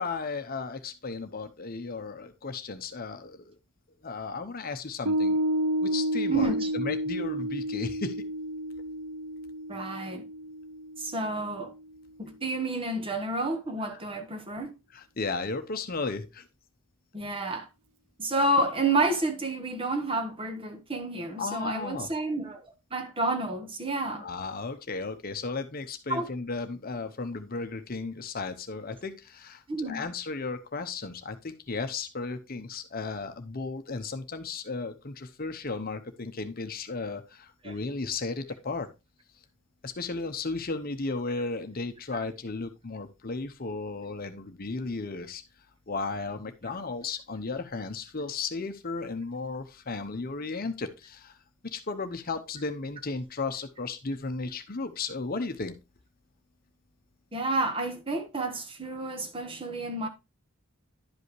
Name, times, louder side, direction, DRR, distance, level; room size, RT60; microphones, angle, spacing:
voice 1, 0.0-3.5 4.0-5.4 5.8-8.2 14.9-16.5 21.4-22.1 24.1-38.9 39.8-45.4 45.9-51.4 51.6-55.8, left 3 dB, 45° left, 0.8 m, -35 dB
Piano, 5.1-11.8, equal, 90° right, 0.7 m, -31 dB
voice 2, 6.3-6.7 9.7-10.2 11.0-11.7 12.2-14.7 17.1-17.7 18.2-22.6 22.9-24.2 26.1-26.3 29.7-30.1 37.6-37.7 57.3-60.1, right 2 dB, 25° right, 1.2 m, -30 dB
11.0 x 5.5 x 3.1 m
head